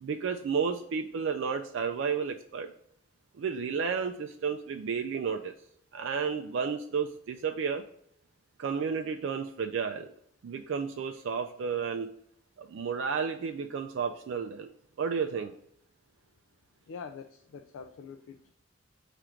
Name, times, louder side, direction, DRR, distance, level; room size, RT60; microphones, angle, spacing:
voice 1, 0.0-2.7 3.4-5.5 5.9-7.8 8.6-10.1 10.4-12.1 12.6-14.7 15.0-15.5, right 6 dB, 65° right, 5 dB, 0.3 m, -32 dB
voice 2, 16.9-18.5, left 5 dB, 80° left, 7 dB, 0.3 m, -45 dB
4.4 x 2.5 x 4.9 m, 0.68 s
head